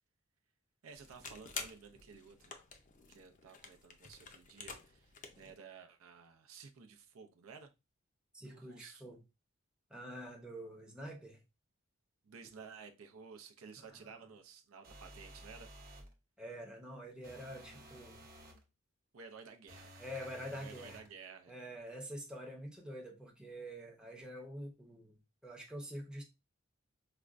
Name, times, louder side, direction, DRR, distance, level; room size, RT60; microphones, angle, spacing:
voice 1, 0.8-2.5 3.1-7.7 8.4-9.1 12.2-15.7 19.1-19.9 20.2-21.6, right 5 dB, 75° right, 0.5 m, -54 dB
sound 1, 0.9-5.5, left 5 dB, 40° left, 0.5 m, -49 dB
voice 2, 8.3-9.2 9.9-11.4 13.8-14.2 16.4-18.2 20.0-21.0 21.5-25.2 25.4-26.2, equal, 5° right, 0.7 m, -46 dB
sound 2, 14.8-16.1 17.2-18.6 19.7-21.1, right 1 dB, 45° right, 0.8 m, -54 dB
4.9 x 2.2 x 2.4 m
head